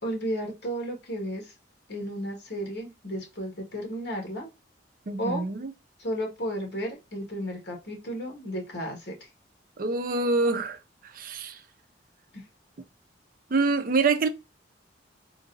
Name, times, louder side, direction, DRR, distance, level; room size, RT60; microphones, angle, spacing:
voice 1, 0.0-1.5 1.9-4.5 5.2-5.4 6.0-9.1 12.3-12.4, equal, 65° left, 1.5 m, -33 dB
voice 2, 5.1-5.7 9.8-11.6 13.5-14.3, right 3 dB, 50° right, 0.5 m, -26 dB
3.8 x 2.6 x 2.5 m
head